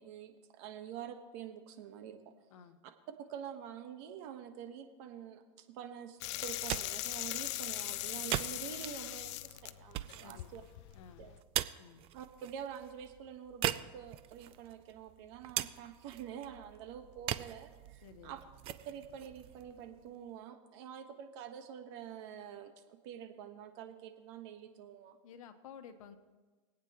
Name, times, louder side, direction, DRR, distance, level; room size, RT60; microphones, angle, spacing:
voice 1, 0.0-2.3 3.2-10.6 11.2-11.4 12.1-18.4 18.8-25.2, right 8 dB, 55° right, 7 dB, 1.3 m, -47 dB
sound 1, 6.2-11.4, left 18 dB, 60° left, 0.4 m, -40 dB
sound 2, 6.4-20.4, right 14 dB, 35° right, 0.4 m, -42 dB
voice 2, 10.9-11.3 11.8-12.0 18.0-18.4 25.2-26.2, left 7 dB, 80° left, 8 dB, 1.2 m, -53 dB
24.0 x 8.8 x 3.0 m, 1.3 s
supercardioid pair, 145°, 17 cm